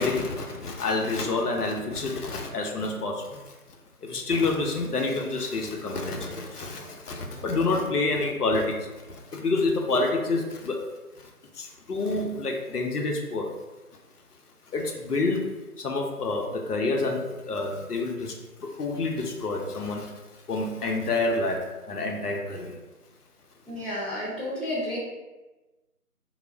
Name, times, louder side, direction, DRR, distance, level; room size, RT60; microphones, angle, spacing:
voice 1, 0.0-3.5 4.0-10.8 11.5-13.5 14.7-15.5 15.8-18.3 18.6-20.1 20.5-22.8, left 3 dB, 80° left, 1 dB, 0.6 m, -28 dB
voice 2, 23.6-25.0, left 1 dB, ahead, -10 dB, 0.5 m, -31 dB
2.4 x 2.0 x 3.2 m, 1.1 s
figure-of-eight pair, 180°, 46 cm